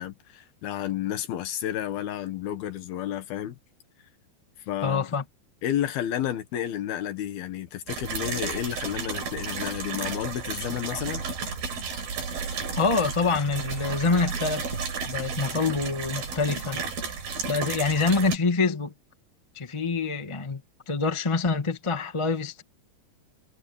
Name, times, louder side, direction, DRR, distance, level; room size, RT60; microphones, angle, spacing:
voice 1, 0.0-3.6 4.7-5.1 5.6-11.3, left 11 dB, 80° left, 3.4 m, -31 dB
voice 2, 4.8-5.2 12.8-16.8 17.5-18.9 19.5-20.6 20.9-22.6, left 4 dB, 20° left, 0.7 m, -26 dB
sound 1, 7.9-18.4, right 5 dB, 80° right, 6.8 m, -33 dB
omnidirectional pair, 4.3 m